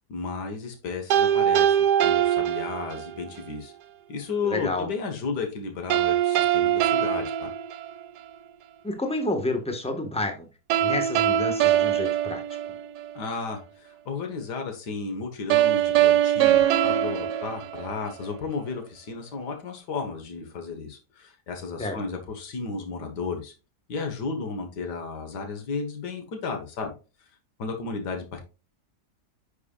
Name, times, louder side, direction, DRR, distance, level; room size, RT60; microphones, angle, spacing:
voice 1, 0.1-3.7 4.1-7.5 13.2-23.5 23.9-26.9 27.6-28.4, left 4 dB, 80° left, 4 dB, 2.0 m, -33 dB
sound 1, 1.1-3.3 5.9-8.3 10.7-13.2 15.5-18.3, right 11 dB, 80° right, 1.2 m, -22 dB
voice 2, 4.4-4.9 8.8-10.5 10.8-12.4 21.8-22.0, left 2 dB, 5° left, 4 dB, 1.2 m, -29 dB
9.6 x 5.9 x 2.4 m, 0.32 s
omnidirectional pair, 1.8 m